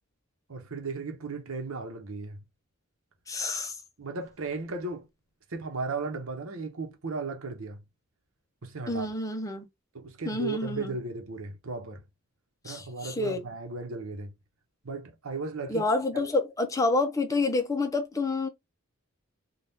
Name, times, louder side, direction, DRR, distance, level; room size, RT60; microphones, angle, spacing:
voice 1, 0.5-2.4 4.0-5.1 5.5-7.8 8.6-9.1 9.9-12.0 12.6-14.3 14.8-15.8, right 3 dB, 80° right, 0.9 m, -35 dB
voice 2, 3.3-3.8 8.9-9.7 10.3-11.0 12.6-13.4 15.7-18.5, left 3 dB, 15° left, 0.5 m, -28 dB
3.5 x 2.4 x 2.7 m
head